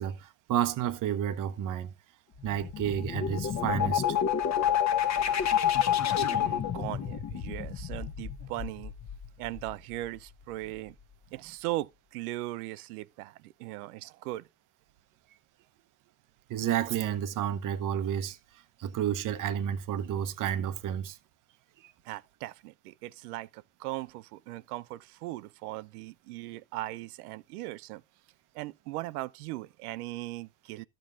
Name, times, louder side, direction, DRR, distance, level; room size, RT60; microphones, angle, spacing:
voice 1, 0.0-1.9 2.4-4.2 16.5-18.4 18.8-21.2 21.8-21.9, right 10 dB, 45° right, 0.9 m, -31 dB
sound 1, 2.3-10.0, left 9 dB, 40° left, 1.1 m, -29 dB
voice 2, 6.2-8.9 9.4-11.0 11.3-14.5 22.0-28.0 28.5-30.9, right 17 dB, 85° right, 0.5 m, -39 dB
13.0 x 7.6 x 2.5 m
hypercardioid pair, 85°, 44 cm